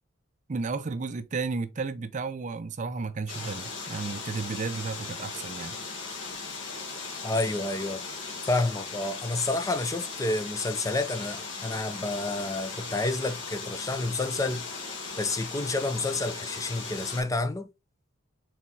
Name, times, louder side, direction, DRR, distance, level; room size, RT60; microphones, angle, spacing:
voice 1, 0.5-5.8, right 4 dB, 40° right, 0.4 m, -33 dB
sound 1, 3.3-17.2, left 4 dB, 65° left, 1.8 m, -38 dB
voice 2, 7.2-8.0 8.5-14.6 15.2-17.7, left 2 dB, 15° left, 0.4 m, -29 dB
4.3 x 4.1 x 2.7 m
head